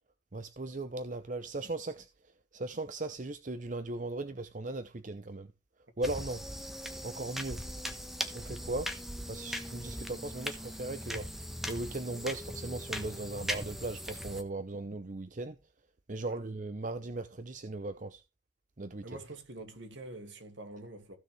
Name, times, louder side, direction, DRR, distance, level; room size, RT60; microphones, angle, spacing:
voice 1, 0.3-5.5 6.0-6.4 7.0-7.6 8.3-8.9 9.3-11.3 11.7-15.6 16.1-18.2 18.8-19.0, right 2 dB, 40° right, 0.7 m, -38 dB
sound 1, 6.0-14.4, equal, ahead, 1.2 m, -39 dB
voice 2, 19.0-21.2, right 2 dB, 65° right, 2.3 m, -46 dB
15.5 x 6.6 x 3.3 m
head